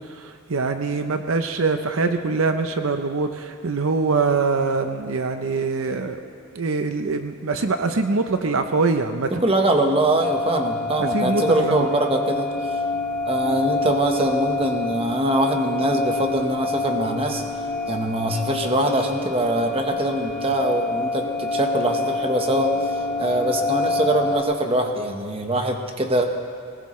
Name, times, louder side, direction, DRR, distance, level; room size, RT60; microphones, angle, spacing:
voice 1, 0.1-6.2 6.5-9.3 11.0-11.9, right 4 dB, 70° right, 7 dB, 0.7 m, -23 dB
voice 2, 9.3-12.5 13.3-17.4 17.9-22.7 23.2-26.2, right 1 dB, 25° right, 3 dB, 1.2 m, -23 dB
sound 1, 10.2-24.4, left 3 dB, 5° left, 1.1 m, -27 dB
21.5 x 19.0 x 3.2 m, 2.2 s
head